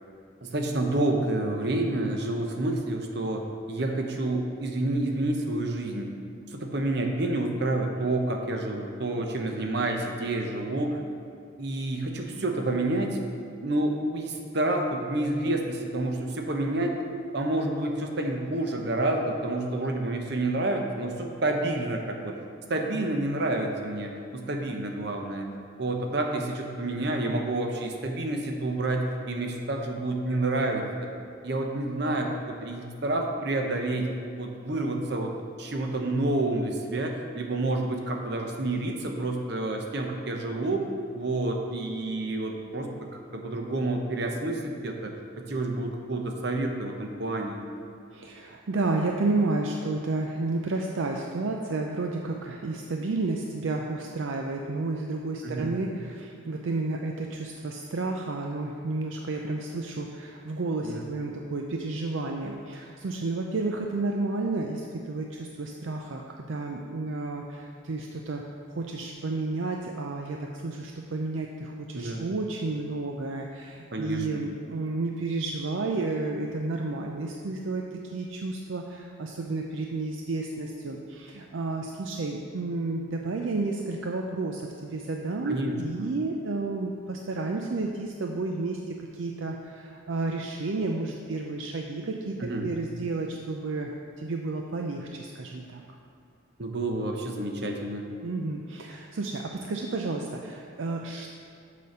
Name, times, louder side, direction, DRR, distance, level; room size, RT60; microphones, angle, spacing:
voice 1, 0.4-6.1 6.5-11.0 11.6-13.2 13.6-17.0 17.3-22.4 22.7-25.5 25.8-30.8 31.4-34.1 34.4-35.3 35.6-47.6 55.4-55.7 60.8-61.0 72.0-72.3 73.9-74.4 85.4-86.1 92.4-92.7 96.6-98.0, right 2 dB, 55° right, 2 dB, 0.9 m, -29 dB
voice 2, 48.1-68.4 68.7-93.9 94.2-95.8 98.2-101.3, right 3 dB, 70° right, 1 dB, 0.5 m, -31 dB
6.8 x 5.1 x 6.6 m, 2.4 s
head